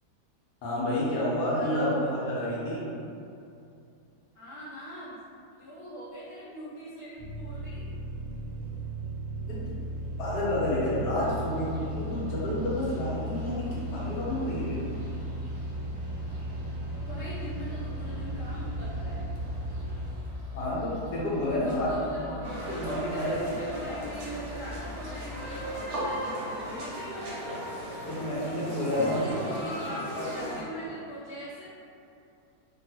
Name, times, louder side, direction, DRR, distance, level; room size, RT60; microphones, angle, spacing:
voice 1, 0.6-2.9 9.5-9.6 10.2-14.9 20.5-21.9 22.3-23.4 28.0-29.3 30.2-30.3, left 1 dB, 75° left, -7 dB, 1.3 m, -30 dB
voice 2, 1.5-2.1 4.3-5.2 5.6-7.8 16.9-19.3 21.6-22.8 23.1-27.5 28.9-31.7, right 1 dB, 25° right, -15 dB, 0.5 m, -40 dB
sound 1, 7.2-20.1, right 1 dB, ahead, 0.9 m, -36 dB
sound 2, 11.2-25.7, equal, 80° right, 1.2 m, -43 dB
sound 3, 22.4-30.6, right 1 dB, 55° right, 0.8 m, -37 dB
3.3 x 2.3 x 2.7 m, 2.6 s
omnidirectional pair, 1.8 m